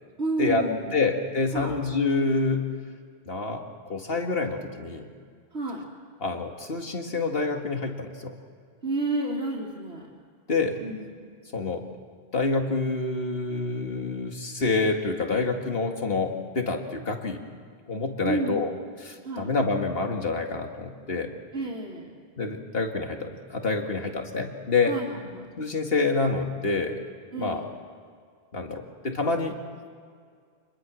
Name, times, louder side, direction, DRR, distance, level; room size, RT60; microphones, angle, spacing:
voice 1, 0.2-1.0 1.5-1.8 5.5-5.8 8.8-10.1 10.8-11.1 18.2-18.7 19.2-19.5 21.5-22.1 24.8-25.5 27.3-27.7, right 2 dB, 80° right, -5 dB, 3.2 m, -30 dB
voice 2, 0.9-2.7 3.3-5.1 6.2-8.4 10.5-10.8 11.5-11.8 12.3-17.4 17.9-18.7 19.0-21.3 22.4-24.9 25.6-27.0 27.4-27.6 28.5-29.6, left 3 dB, 60° left, 3 dB, 2.3 m, -27 dB
29.0 x 21.5 x 6.4 m, 2.1 s
omnidirectional pair, 1.1 m